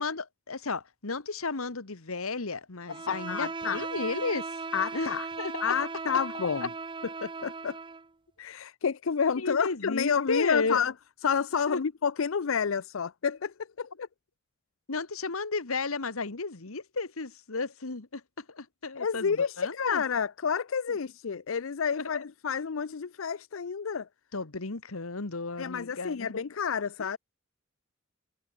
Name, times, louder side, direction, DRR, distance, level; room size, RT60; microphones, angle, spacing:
voice 1, 0.0-4.5 4.9-5.1 5.4-5.8 9.4-10.8 11.7-11.8 14.9-20.0 20.9-21.0 21.9-22.2 24.3-26.3 27.0-27.1, left 3 dB, 85° left, 1.5 m, -33 dB
Bowed string instrument, 2.9-8.1, right 4 dB, 25° right, 0.6 m, -37 dB
voice 2, 3.1-3.9 4.7-5.3 5.6-6.7 7.2-7.8 8.4-10.9 11.2-14.1 19.0-24.1 25.6-27.2, left 6 dB, 70° left, 0.5 m, -30 dB
head